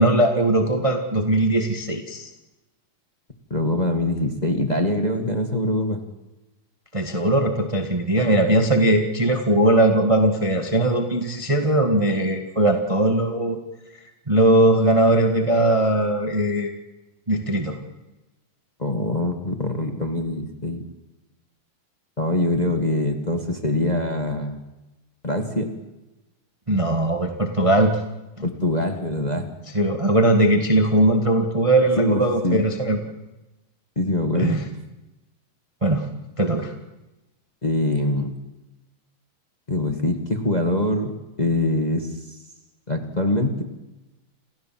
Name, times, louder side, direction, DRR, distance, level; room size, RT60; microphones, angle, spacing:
voice 1, 0.0-2.3 6.9-13.6 14.3-16.7 17.3-17.8 26.7-28.0 29.7-33.0 34.3-34.7 35.8-36.0 36.4-36.7, right 1 dB, 45° right, 5 dB, 0.4 m, -19 dB
voice 2, 3.5-6.0 18.8-20.8 22.2-24.6 25.2-25.7 28.4-29.5 32.0-32.6 33.9-34.6 37.6-38.4 39.7-42.1 42.9-43.6, left 1 dB, 20° left, 4 dB, 1.1 m, -23 dB
28.0 x 15.5 x 7.7 m, 1.0 s
omnidirectional pair, 4.0 m